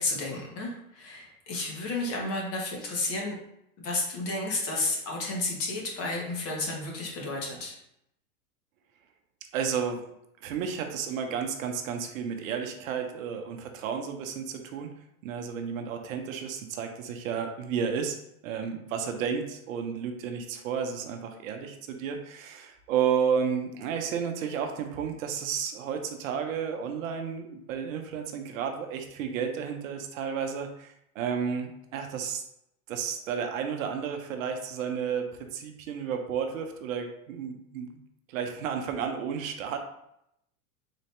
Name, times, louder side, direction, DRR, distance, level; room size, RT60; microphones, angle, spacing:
voice 1, 0.0-3.4 3.8-7.8, left 2 dB, 35° left, -1 dB, 1.2 m, -32 dB
voice 2, 9.5-10.1 10.4-14.9 15.2-18.2 18.4-32.4 32.9-38.0 38.3-39.8, right 7 dB, 65° right, 5 dB, 0.7 m, -32 dB
4.0 x 2.6 x 3.3 m, 0.78 s
hypercardioid pair, 115°, 43 cm